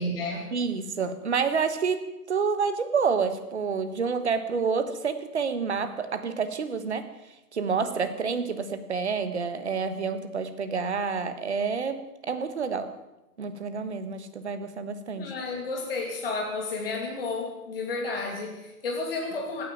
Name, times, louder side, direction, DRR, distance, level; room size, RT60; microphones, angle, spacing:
voice 1, 0.0-0.5 15.1-19.6, left 3 dB, 35° left, 0 dB, 2.7 m, -32 dB
voice 2, 0.5-7.1 7.5-12.9 13.4-15.3, right 5 dB, 45° right, 10 dB, 1.6 m, -28 dB
16.5 x 9.8 x 8.7 m, 0.97 s
figure-of-eight pair, 150°, 47 cm